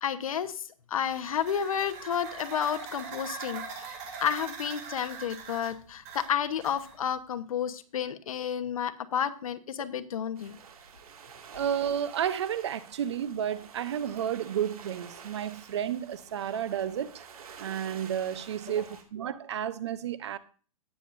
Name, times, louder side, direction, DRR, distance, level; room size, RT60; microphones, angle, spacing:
voice 1, 0.0-0.6 0.9-10.6 18.7-18.8, left 8 dB, 70° left, 1.1 m, -31 dB
sound 1, 1.0-7.2, right 5 dB, 25° right, 1.5 m, -42 dB
sound 2, 10.4-19.0, right 7 dB, 85° right, 2.1 m, -49 dB
voice 2, 11.5-17.2 17.6-20.4, right 9 dB, 50° right, 0.7 m, -32 dB
17.5 x 7.2 x 2.6 m
hypercardioid pair, 175°, 18 cm